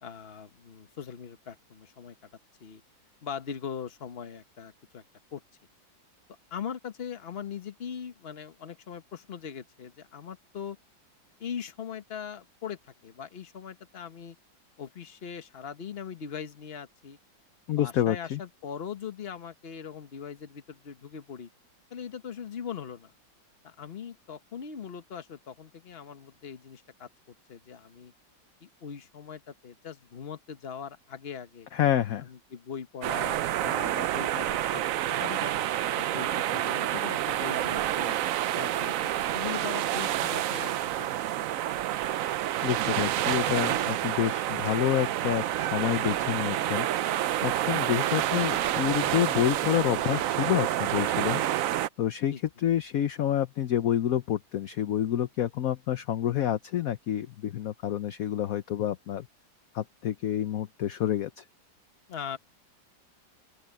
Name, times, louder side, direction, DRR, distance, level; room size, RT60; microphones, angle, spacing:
voice 1, 0.0-2.1 2.6-2.8 3.2-5.0 5.3-5.4 6.5-10.8 11.4-14.4 14.8-17.2 17.8-21.5 21.9-23.1 23.6-27.1 27.5-28.1 28.6-31.7 32.2-34.8 35.1-35.5 36.0-38.2 38.5-41.1 41.4-41.5 52.3-52.4 62.1-62.4, left 7 dB, 35° left, 1.2 m, -40 dB
voice 2, 17.7-18.4 31.7-32.3 42.6-46.9 47.4-51.4 52.0-59.3 59.7-61.4, left 11 dB, 60° left, 1.0 m, -28 dB
sound 1, 33.0-51.9, right 12 dB, 75° right, 0.7 m, -28 dB
open air
omnidirectional pair, 2.0 m